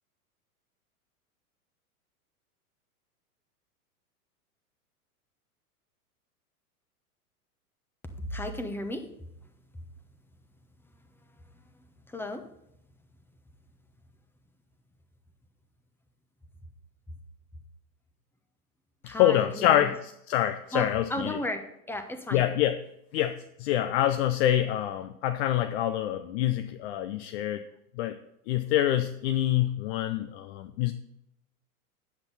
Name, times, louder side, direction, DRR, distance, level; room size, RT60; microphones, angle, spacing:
voice 1, 8.2-9.0 12.1-12.4 19.0-19.9 20.7-22.4, left 1 dB, 5° left, 7 dB, 1.0 m, -34 dB
voice 2, 19.2-20.0 20.3-21.4 22.3-22.8 23.1-27.6 28.0-28.2 28.5-30.9, left 12 dB, 45° left, 9 dB, 0.6 m, -26 dB
9.7 x 8.3 x 4.1 m, 0.81 s
figure-of-eight pair, 95°, 46 cm